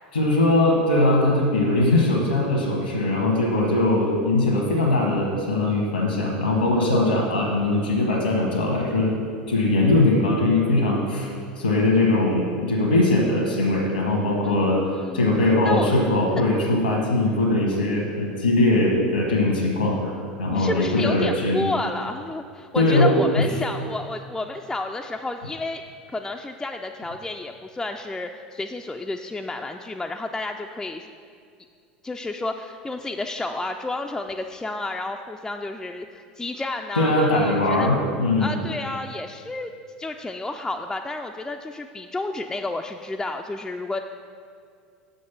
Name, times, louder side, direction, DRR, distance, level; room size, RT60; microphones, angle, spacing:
voice 1, 0.1-9.1 9.5-14.8 15.1-21.7 22.7-23.5 37.0-38.5, left 2 dB, 85° left, -1 dB, 1.1 m, -21 dB
voice 2, 14.4-15.2 15.6-16.0 16.3-16.4 20.5-25.8 26.1-31.1 32.0-37.9 38.4-39.7 40.0-44.0, left 2 dB, 10° left, 4 dB, 0.3 m, -31 dB
6.4 x 5.3 x 5.9 m, 2.3 s
figure-of-eight pair, 75°, 5 cm